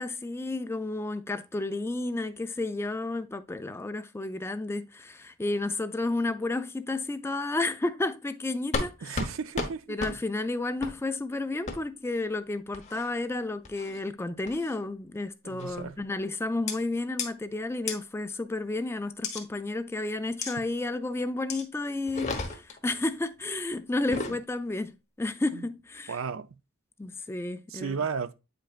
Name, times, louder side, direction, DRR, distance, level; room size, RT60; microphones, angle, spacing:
voice 1, 0.0-9.2 9.9-26.2 27.0-28.0, left 2 dB, 10° left, 0.3 m, -32 dB
sound 1, 8.7-8.9 9.2-9.3 9.6-9.7 10.0-10.1 10.8-11.0 11.7-11.8 12.7-13.1 13.6-14.0 14.5-14.8 15.6-15.9 16.7-16.8 17.2-17.3 17.9-18.0 19.2-19.4 20.4-20.5 21.5-21.6 22.1-22.8 23.9-24.4, left 3 dB, 35° left, 1.1 m, -33 dB
voice 2, 9.0-10.0 15.4-15.9 24.1-24.2 25.5-25.6 26.1-26.5 27.7-28.3, right 5 dB, 70° right, 0.5 m, -34 dB
8.7 x 5.2 x 2.4 m
head